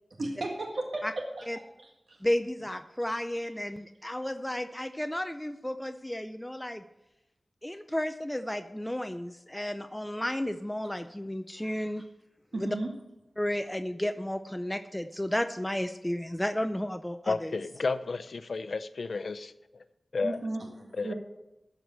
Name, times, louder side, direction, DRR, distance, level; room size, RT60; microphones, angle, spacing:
voice 1, 0.2-1.1 1.4-1.5 2.1-2.2 12.5-12.9 20.2-21.1, right 2 dB, 65° right, 1 dB, 1.8 m, -34 dB
voice 2, 2.2-6.8 7.6-12.0 12.6-12.8 13.4-17.6, left 1 dB, 10° left, 8 dB, 0.5 m, -33 dB
voice 3, 17.3-19.8 20.1-20.4 20.9-21.1, left 4 dB, 75° left, 11 dB, 0.6 m, -32 dB
13.0 x 4.8 x 7.7 m, 0.92 s
wide cardioid pair, 95°, 0 cm